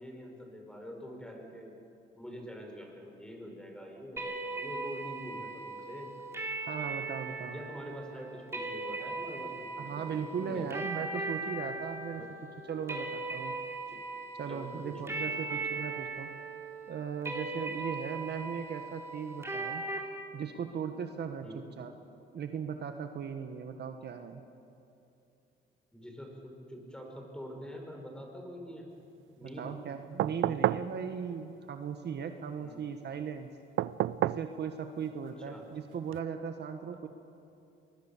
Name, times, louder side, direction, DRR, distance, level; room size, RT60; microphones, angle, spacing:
voice 1, 0.0-1.7 2.2-6.1 7.4-11.2 12.1-12.3 13.9-14.0 14.5-15.1 21.4-21.7 25.9-28.9 29.4-29.7 32.6-32.8 35.5-35.7 36.9-37.0, equal, 5° left, 2 dB, 5.5 m, -45 dB
sound 1, 4.2-20.0, right 3 dB, 15° right, 3.8 m, -39 dB
voice 2, 6.7-7.6 9.8-12.2 12.7-13.6 14.4-16.3 16.9-19.8 20.3-21.9 22.3-24.4 29.4-33.5 34.2-37.1, right 7 dB, 60° right, 7 dB, 1.5 m, -38 dB
sound 2, 30.2-30.9 33.8-34.5 36.1-36.2, right 14 dB, 80° right, 0.5 m, -29 dB
24.0 x 21.0 x 7.4 m, 2.7 s
cardioid pair, 90°, 20 cm